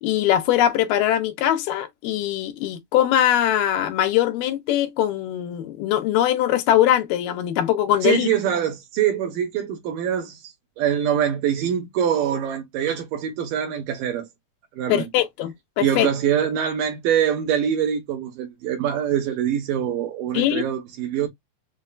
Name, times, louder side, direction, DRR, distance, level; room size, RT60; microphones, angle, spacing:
voice 1, 0.0-8.3 14.9-16.1 20.3-20.6, left 12 dB, 90° left, 2.4 m, -21 dB
voice 2, 8.0-14.3 14.7-15.1 15.8-21.3, right 9 dB, 85° right, 2.6 m, -24 dB
6.3 x 2.1 x 2.4 m
omnidirectional pair, 3.8 m